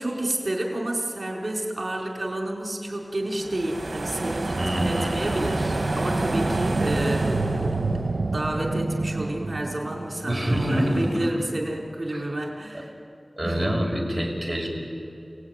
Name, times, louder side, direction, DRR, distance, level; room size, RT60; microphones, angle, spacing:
voice 1, 0.0-7.9 8.3-12.9 13.4-13.7, right 1 dB, 45° right, 0 dB, 4.6 m, -30 dB
Car passing by / Traffic noise roadway noise, 2.7-9.7, left 1 dB, 90° left, 4.5 m, -44 dB
sound 1, 3.4-11.3, right 2 dB, 65° right, 1.4 m, -28 dB
voice 2, 4.5-5.6 10.2-11.3 12.1-12.2 13.4-14.7, equal, 15° right, -1 dB, 6.2 m, -26 dB
29.0 x 19.0 x 9.7 m, 2.7 s
wide cardioid pair, 70°, 0 cm